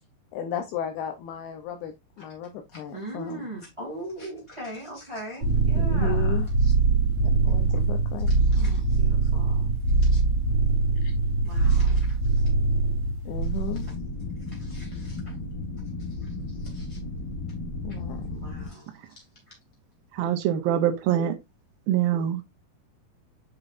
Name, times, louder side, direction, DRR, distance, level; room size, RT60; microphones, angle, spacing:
voice 1, 0.3-3.4 5.7-6.5 7.5-8.3 11.0-11.1 13.3-13.9 17.8-18.4, left 8 dB, 80° left, 2.7 m, -34 dB
voice 2, 2.7-6.7 8.3-9.7 10.0-10.2 11.4-12.5 13.7-13.9 14.5-15.3 16.0-17.0 17.9-18.0 18.3-19.5, right 1 dB, 10° right, 1.8 m, -41 dB
sound 1, 5.4-13.9, right 4 dB, 40° right, 3.1 m, -22 dB
sound 2, 13.7-18.7, left 2 dB, 60° left, 1.1 m, -34 dB
voice 3, 20.1-21.4 21.9-22.4, right 10 dB, 75° right, 2.4 m, -24 dB
8.0 x 5.5 x 2.5 m
omnidirectional pair, 4.5 m